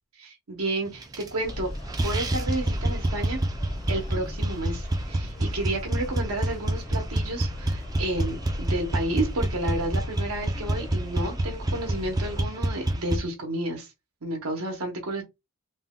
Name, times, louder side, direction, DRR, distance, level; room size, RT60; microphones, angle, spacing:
voice 1, 0.2-1.7 2.0-3.4 3.9-13.9 14.2-15.2, right 1 dB, 80° right, 0.9 m, -31 dB
sound 1, 1.0-1.6 1.9-13.2, right 1 dB, 15° right, 0.3 m, -28 dB
sound 2, 1.4-12.4, left 1 dB, 25° left, 0.6 m, -38 dB
2.8 x 2.2 x 3.5 m
head